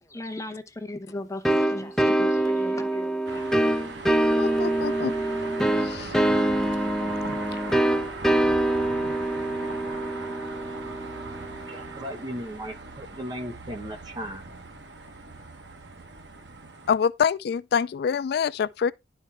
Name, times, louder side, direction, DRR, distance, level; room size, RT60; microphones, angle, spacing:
voice 1, 0.0-3.5, left 2 dB, 20° left, 0.8 m, -37 dB
sound 1, 1.4-11.9, right 1 dB, 5° left, 0.5 m, -25 dB
sound 2, 3.2-17.0, right 3 dB, 75° right, 1.2 m, -39 dB
voice 2, 4.4-5.1 5.8-6.1 16.9-18.9, left 7 dB, 60° left, 0.3 m, -25 dB
voice 3, 11.7-14.4, equal, 25° right, 1.3 m, -36 dB
10.5 x 4.5 x 3.5 m
head